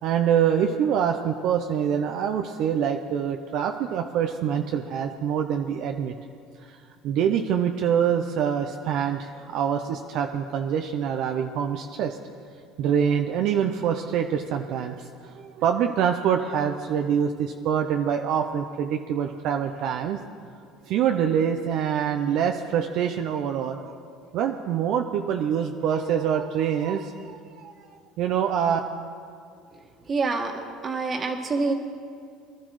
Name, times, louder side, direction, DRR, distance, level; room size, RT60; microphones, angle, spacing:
voice 1, 0.0-6.2 6.6-6.8 7.0-12.2 12.8-20.2 20.9-23.9 24.3-27.7 28.2-28.8, right 8 dB, 65° right, 5 dB, 0.6 m, -25 dB
voice 2, 30.1-30.5 30.8-31.7, right 3 dB, 35° right, 3 dB, 1.7 m, -26 dB
22.5 x 12.5 x 3.2 m, 2.3 s
supercardioid pair, 85°, 0 cm